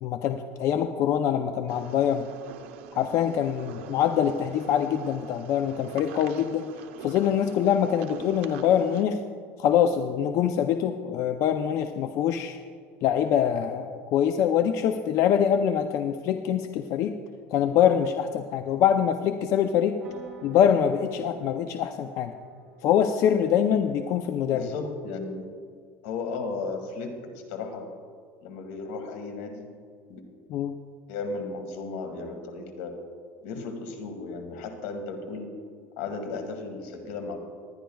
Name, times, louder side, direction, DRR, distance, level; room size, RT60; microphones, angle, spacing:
voice 1, 0.0-2.3 2.9-6.7 7.0-9.2 9.6-12.6 13.0-17.2 17.5-20.0 20.4-22.3 22.8-24.7 30.5-30.7, left 9 dB, 50° left, 7 dB, 0.5 m, -24 dB
sound 1, 1.7-9.0, right 9 dB, 85° right, 0.8 m, -44 dB
sound 2, 20.0-24.7, right 2 dB, 25° right, 2.0 m, -49 dB
voice 2, 24.5-25.5 26.0-27.9 28.4-29.7 30.1-30.2 31.1-33.0 33.4-35.5 36.0-37.4, left 4 dB, 80° left, 6 dB, 1.7 m, -35 dB
20.5 x 10.0 x 2.3 m, 2.1 s
supercardioid pair, 135°, 6 cm